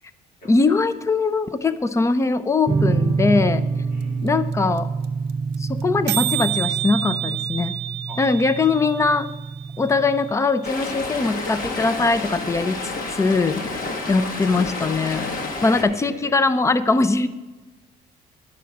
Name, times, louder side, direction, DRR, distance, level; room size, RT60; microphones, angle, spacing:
voice 1, 0.5-3.6 4.2-4.9 5.6-7.8 8.2-9.3 9.8-12.8 13.1-13.6 14.1-15.3 15.6-17.3, left 3 dB, 15° left, 13 dB, 0.5 m, -21 dB
sound 1, 2.7-10.3, right 4 dB, 30° right, 0.7 m, -27 dB
voice 2, 3.9-4.3 8.1-8.5 13.6-14.0 15.6-16.4, equal, 80° left, -4 dB, 4.0 m, -41 dB
sound 2, 4.0-4.1 4.3-4.4 4.5-4.8 5.0-5.1 5.3-5.5 5.8-5.9 6.1-10.0, right 13 dB, 85° right, 0.5 m, -29 dB
Stream, 10.6-15.8, left 3 dB, 55° left, 1.5 m, -30 dB
11.0 x 4.6 x 7.2 m, 1.1 s
cardioid pair, 110°, 17 cm